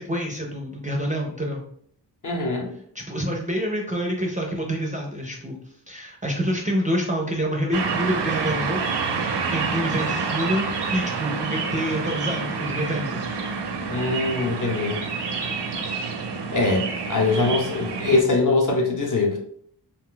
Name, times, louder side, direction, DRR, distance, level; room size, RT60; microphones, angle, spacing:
voice 1, 0.0-1.6 2.9-5.6 5.9-8.8 9.5-13.2 18.1-18.2, equal, 20° right, 0 dB, 0.4 m, -27 dB
voice 2, 2.2-2.7 13.9-15.0 16.5-19.4, left 3 dB, 45° left, 0 dB, 0.7 m, -22 dB
sound 1, 7.7-18.2, right 4 dB, 70° right, 0.5 m, -28 dB
2.4 x 2.2 x 3.7 m, 0.64 s
wide cardioid pair, 110°, 43 cm